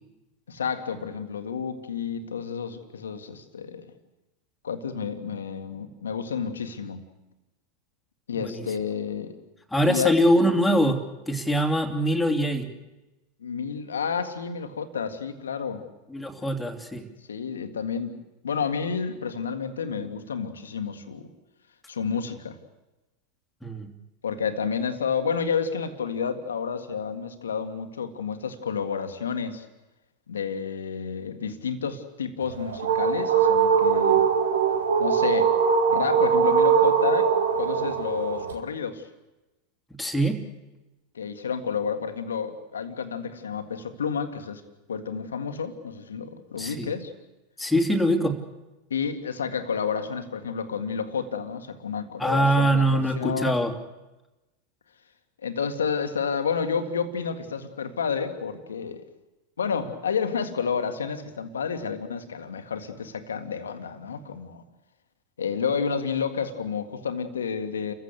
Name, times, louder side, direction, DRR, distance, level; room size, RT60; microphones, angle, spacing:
voice 1, 0.5-3.9 4.6-7.1 8.3-9.3 9.9-10.1 13.4-15.8 16.4-16.5 17.3-18.2 18.4-21.3 21.9-22.6 24.2-29.6 30.3-34.3 35.0-35.5 35.9-39.0 41.1-44.6 44.9-47.1 48.9-53.6 55.4-59.0 59.6-64.6 65.4-67.9, left 6 dB, 80° left, 8 dB, 1.9 m, -30 dB
voice 2, 8.4-8.7 9.7-11.0 11.3-12.7 16.1-17.0 23.6-23.9 40.0-40.4 46.6-46.9 47.6-48.4 52.2-53.7, equal, 5° left, 3 dB, 3.0 m, -23 dB
Strange Echo Voice, 32.4-38.5, right 7 dB, 75° right, 2.2 m, -21 dB
29.5 x 15.5 x 8.3 m, 1.0 s
figure-of-eight pair, 90°, 0 cm